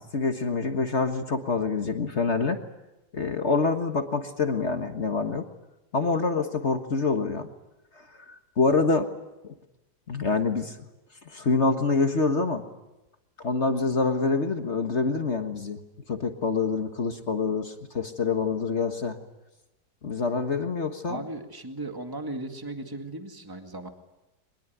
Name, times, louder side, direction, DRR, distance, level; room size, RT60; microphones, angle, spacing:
voice 1, 0.0-2.6 3.1-5.5 5.9-7.5 8.0-9.1 9.4-9.5 10.1-10.8 11.2-12.6 13.4-15.8 16.1-19.2 20.0-21.2, left 4 dB, 45° left, 6 dB, 1.7 m, -26 dB
voice 2, 21.1-23.9, right 2 dB, 15° right, 4 dB, 2.0 m, -36 dB
23.0 x 21.5 x 9.4 m, 0.99 s
omnidirectional pair, 1.8 m